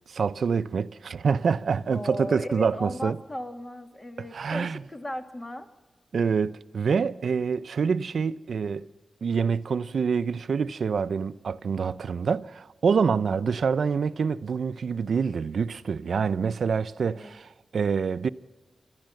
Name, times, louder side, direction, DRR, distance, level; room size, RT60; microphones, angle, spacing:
voice 1, 0.1-3.2 4.3-4.8 6.1-8.9 9.2-18.3, right 6 dB, 75° right, 0.5 m, -26 dB
voice 2, 1.9-5.7 17.0-17.4, left 1 dB, 25° left, 2.0 m, -36 dB
29.5 x 13.0 x 7.7 m
cardioid pair, 60°, 0 cm